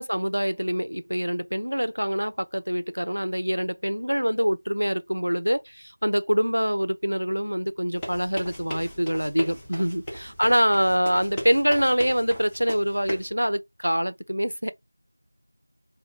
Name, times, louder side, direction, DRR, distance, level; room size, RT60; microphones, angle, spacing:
voice 1, 0.0-14.7, equal, 90° right, 0.4 m, -25 dB
sound 1, 7.9-13.3, equal, 5° left, 0.7 m, -37 dB
2.2 x 2.1 x 2.8 m
figure-of-eight pair, 175°, 0 cm